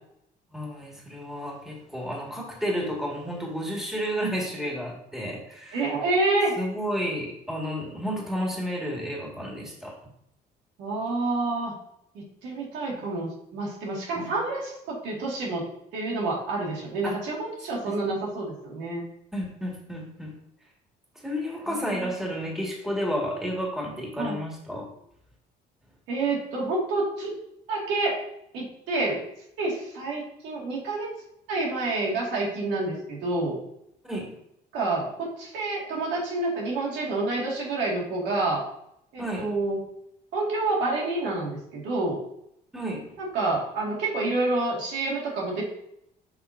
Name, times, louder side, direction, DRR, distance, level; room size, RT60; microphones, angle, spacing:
voice 1, 0.5-5.9 6.6-10.0 14.1-14.4 17.0-17.1 17.8-18.2 19.3-20.4 21.2-24.9 34.0-34.4 39.2-39.5 42.7-43.1, equal, ahead, -2 dB, 2.2 m, -31 dB
voice 2, 5.7-6.5 10.8-11.7 12.4-15.6 15.9-19.0 21.7-22.1 24.2-24.4 26.1-27.3 27.7-28.2 28.5-29.2 29.6-31.1 31.5-33.6 34.7-38.6 39.1-39.8 40.3-42.2 43.2-45.6, right 2 dB, 90° right, -3 dB, 2.3 m, -28 dB
8.0 x 5.8 x 2.8 m, 0.75 s
cardioid pair, 95°, 18 cm